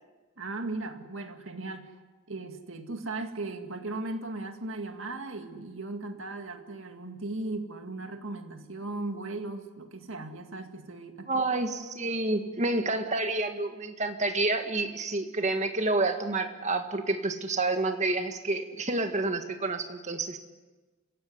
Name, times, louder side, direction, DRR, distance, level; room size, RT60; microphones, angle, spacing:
voice 1, 0.4-1.9 2.3-11.4, right 2 dB, 65° right, 5 dB, 2.2 m, -37 dB
voice 2, 11.3-20.4, right 2 dB, 35° right, 6 dB, 1.9 m, -29 dB
26.5 x 16.5 x 9.7 m, 1.3 s
head